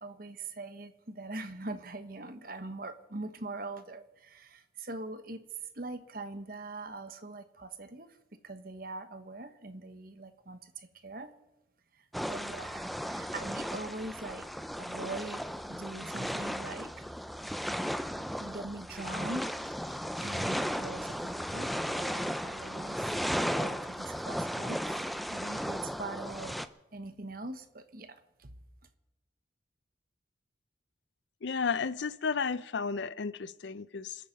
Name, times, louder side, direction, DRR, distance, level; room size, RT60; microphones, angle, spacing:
voice 1, 0.0-5.4 5.7-8.1 8.4-11.3 12.0-14.5 14.8-16.9 18.4-19.5 19.8-23.2 23.5-26.6 26.9-28.5, right 2 dB, 50° right, 1.2 m, -42 dB
sound 1, 12.1-26.7, equal, ahead, 0.4 m, -35 dB
voice 2, 31.4-34.3, left 5 dB, 70° left, 0.5 m, -33 dB
26.0 x 8.8 x 5.3 m
head